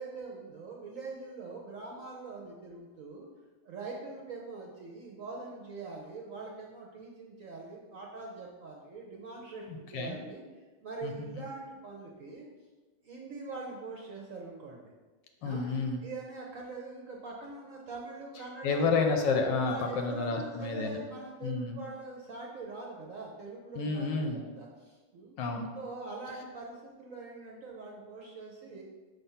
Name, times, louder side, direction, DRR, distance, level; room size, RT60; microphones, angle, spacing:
voice 1, 0.0-3.3 3.6-10.4 10.8-12.5 13.0-14.9 15.4-18.8 19.6-25.3 25.7-28.8, right 3 dB, 60° right, -2 dB, 0.9 m, -43 dB
voice 2, 9.7-10.2 11.0-11.4 15.4-16.0 18.6-21.0 21.4-21.8 23.7-24.4 25.4-25.7, left 4 dB, 70° left, 3 dB, 1.3 m, -30 dB
6.0 x 3.4 x 5.6 m, 1.3 s
omnidirectional pair, 2.1 m